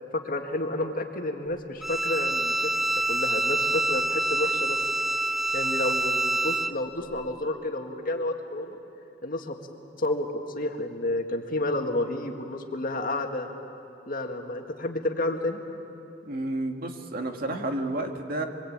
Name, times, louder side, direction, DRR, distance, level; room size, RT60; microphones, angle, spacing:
voice 1, 0.3-2.7 3.1-4.8 5.5-8.8 9.2-9.5 10.0-10.3 10.6-13.5 14.1-15.6, left 1 dB, 50° left, 3 dB, 1.9 m, -30 dB
Bowed string instrument, 1.8-6.7, right 1 dB, ahead, 0.6 m, -26 dB
voice 2, 16.3-18.4, right 1 dB, 50° right, 4 dB, 2.0 m, -31 dB
26.0 x 23.0 x 8.7 m, 2.8 s
head